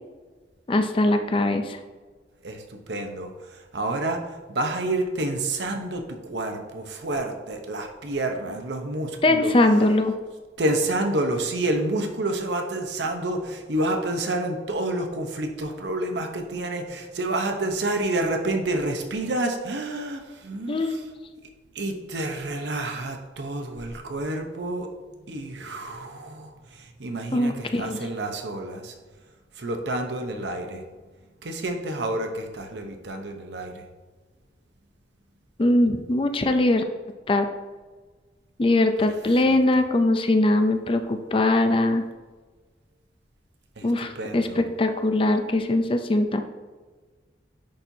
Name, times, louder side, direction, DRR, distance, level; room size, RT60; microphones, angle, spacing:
voice 1, 0.7-1.8 9.2-10.2 20.7-21.1 27.3-28.0 35.6-36.8 37.3-37.5 38.6-42.0 43.8-46.4, left 2 dB, 30° left, 7 dB, 0.4 m, -21 dB
voice 2, 2.4-9.5 10.6-21.0 21.7-24.9 25.3-28.9 29.6-30.8 31.4-33.9 39.5-39.6 43.8-44.6, right 1 dB, 70° right, 5 dB, 0.8 m, -29 dB
10.0 x 4.3 x 2.7 m, 1.3 s
head